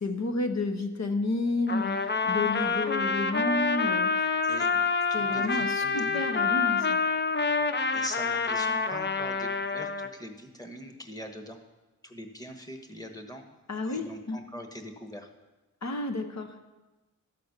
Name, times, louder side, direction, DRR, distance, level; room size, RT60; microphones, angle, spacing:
voice 1, 0.0-2.0 2.2-4.1 5.1-7.0 13.7-14.4 15.8-16.6, left 2 dB, 60° left, 5 dB, 0.9 m, -31 dB
Trumpet, 1.7-10.1, left 4 dB, 35° left, 0.6 m, -27 dB
voice 2, 4.4-4.7 5.1-6.3 7.9-11.6 12.0-13.6 13.9-15.3, equal, 10° left, 5 dB, 1.2 m, -42 dB
12.5 x 4.3 x 6.6 m, 1.1 s
wide cardioid pair, 75°, 31 cm